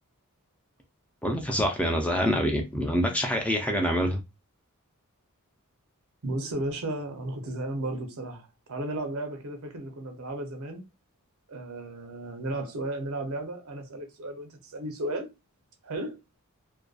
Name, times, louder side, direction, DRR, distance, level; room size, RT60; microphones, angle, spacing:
voice 1, 1.2-4.2, equal, 5° left, 0.4 m, -26 dB
voice 2, 6.2-10.8 11.5-15.3 15.8-16.2, right 1 dB, 65° right, 0.6 m, -34 dB
2.5 x 2.2 x 2.3 m
head